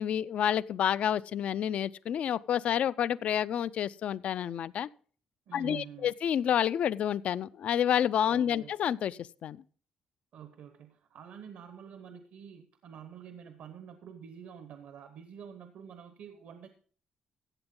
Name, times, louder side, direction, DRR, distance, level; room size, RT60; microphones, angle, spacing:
voice 1, 0.0-4.9 5.5-9.6, left 9 dB, 60° left, 0.4 m, -29 dB
voice 2, 5.5-6.1 8.3-8.7 10.3-16.7, right 8 dB, 75° right, 1.0 m, -48 dB
15.0 x 7.9 x 3.8 m
cardioid pair, 135°, 2 cm